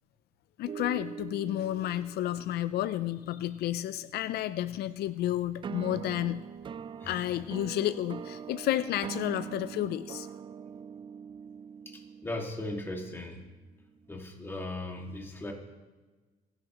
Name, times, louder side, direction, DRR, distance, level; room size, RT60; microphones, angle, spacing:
voice 1, 0.6-6.4 7.1-10.3, left 13 dB, 75° left, 14 dB, 0.4 m, -31 dB
sound 1, 0.7-4.0 5.6-14.2, right 7 dB, 30° right, 0.3 m, -43 dB
voice 2, 7.0-7.3 11.9-13.4 14.1-15.5, left 2 dB, 15° left, 1 dB, 2.0 m, -38 dB
27.0 x 10.5 x 3.0 m, 1.3 s
cardioid pair, 135°, 16 cm